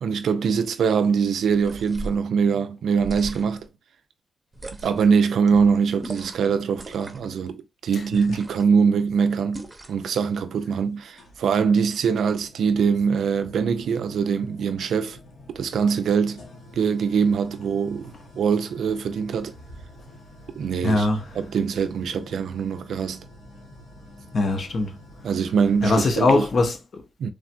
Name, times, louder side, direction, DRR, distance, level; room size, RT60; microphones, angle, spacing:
voice 1, 0.0-3.7 4.8-15.2 15.6-16.4 16.8-19.5 20.6-21.1 21.4-23.2 25.2-26.4 27.2-27.3, right 6 dB, 85° right, 0.3 m, -23 dB
sound 1, 1.5-2.2 3.0-3.7 4.5-5.1 6.0-6.5 6.7-7.3 8.1-8.7 9.5-10.1, right 2 dB, 25° right, 0.6 m, -38 dB
sound 2, 8.3-8.9 10.3-10.4 11.2-26.2, left 1 dB, 80° left, 0.9 m, -48 dB
voice 2, 20.8-21.3 24.3-25.0 25.8-27.0, left 2 dB, 60° left, 0.6 m, -21 dB
3.3 x 2.2 x 2.4 m
cardioid pair, 85°, 0 cm